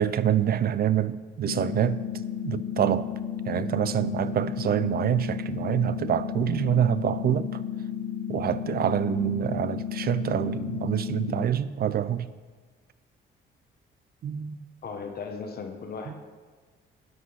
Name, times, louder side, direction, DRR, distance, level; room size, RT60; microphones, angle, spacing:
voice 1, 0.0-2.0 2.4-3.1 3.5-7.6 8.3-12.3 14.2-14.6 16.1-16.2, right 10 dB, 50° right, 16 dB, 0.5 m, -26 dB
sound 1, 1.5-11.5, left 9 dB, 65° left, 0.5 m, -33 dB
voice 2, 14.8-16.1, left 5 dB, 50° left, 5 dB, 1.1 m, -36 dB
12.0 x 5.1 x 5.7 m, 1.5 s
cardioid pair, 90°, 20 cm